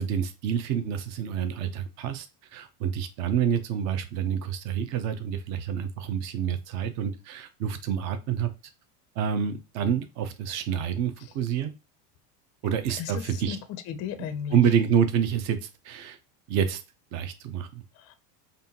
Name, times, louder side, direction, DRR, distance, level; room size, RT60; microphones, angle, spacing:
voice 1, 0.0-2.3 2.5-8.5 9.2-11.7 12.6-13.6 14.5-16.2 16.5-16.8 17.1-17.8, right 8 dB, 35° right, 0.5 m, -27 dB
voice 2, 13.0-13.6 13.9-14.6 18.0-18.1, left 8 dB, 35° left, 0.4 m, -35 dB
5.4 x 2.6 x 2.7 m
supercardioid pair, 140°, 48 cm